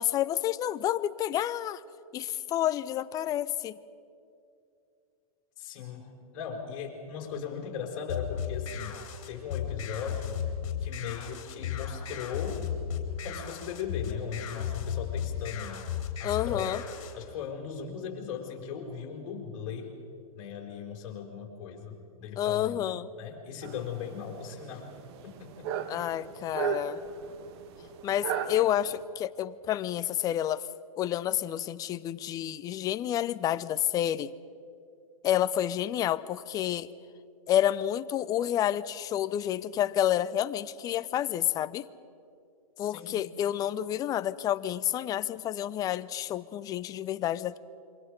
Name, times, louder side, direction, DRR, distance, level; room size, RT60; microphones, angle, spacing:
voice 1, 0.0-1.8 2.1-3.8 16.2-16.8 22.4-23.1 25.9-27.0 28.0-30.7 31.0-34.3 35.2-36.9 37.5-41.8 42.8-47.6, left 11 dB, 20° left, 16 dB, 0.5 m, -29 dB
voice 2, 5.6-8.9 9.3-10.4 10.8-12.7 13.2-15.8 16.2-16.9 17.1-19.9 20.3-22.8 23.2-24.9 25.2-25.7 42.8-43.2, left 7 dB, 40° left, 0 dB, 5.4 m, -38 dB
sound 1, 8.1-17.1, left 8 dB, 55° left, 3.7 m, -35 dB
sound 2, 23.6-29.0, right 8 dB, 45° right, 1.6 m, -37 dB
27.5 x 24.0 x 5.2 m, 2.6 s
hypercardioid pair, 130°, 19 cm